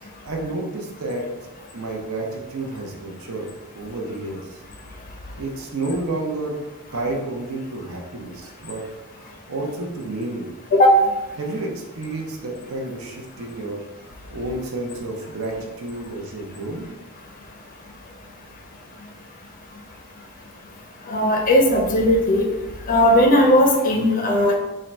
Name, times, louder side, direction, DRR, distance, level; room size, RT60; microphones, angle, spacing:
voice 1, 0.0-1.3 1.7-3.5 3.7-4.6 5.3-6.5 6.9-8.8 9.2-10.5 11.4-16.9, right 2 dB, 65° right, 1 dB, 0.7 m, -30 dB
voice 2, 21.1-22.5 22.9-24.6, equal, 40° left, 1 dB, 0.5 m, -16 dB
3.7 x 2.2 x 4.2 m, 1.1 s
head